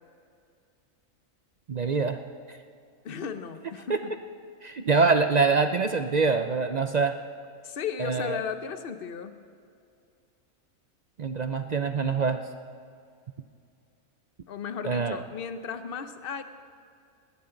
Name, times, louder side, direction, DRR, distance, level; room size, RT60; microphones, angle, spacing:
voice 1, 1.7-2.2 3.9-4.0 4.6-7.2 8.0-8.4 11.2-12.4 14.8-15.2, right 4 dB, 60° right, 8 dB, 0.4 m, -24 dB
voice 2, 3.0-4.1 7.6-9.4 14.5-16.4, left 6 dB, 45° left, 9 dB, 1.0 m, -35 dB
19.5 x 19.0 x 3.9 m, 2.3 s
omnidirectional pair, 1.4 m